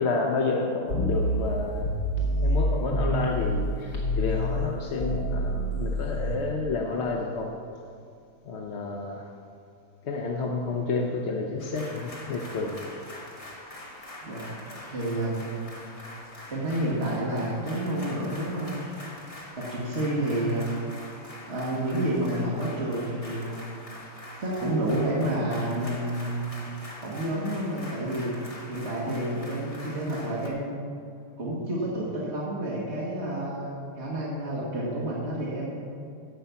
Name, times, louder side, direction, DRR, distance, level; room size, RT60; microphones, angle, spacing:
voice 1, 0.0-1.9 2.4-7.5 8.5-9.3 10.1-12.8, left 3 dB, 50° left, 1 dB, 0.9 m, -30 dB
sound 1, 0.9-3.6 3.9-6.4, equal, 75° left, 2.8 m, -27 dB
sound 2, 11.6-30.5, left 1 dB, 20° left, 1.5 m, -44 dB
voice 2, 14.2-14.5 14.8-15.6 16.5-18.8 19.6-20.7 21.4-23.6 24.4-26.5 27.0-28.3 28.7-30.9 31.4-35.8, right 1 dB, 40° right, -5 dB, 2.1 m, -29 dB
16.0 x 5.5 x 7.0 m, 2.5 s
omnidirectional pair, 1.8 m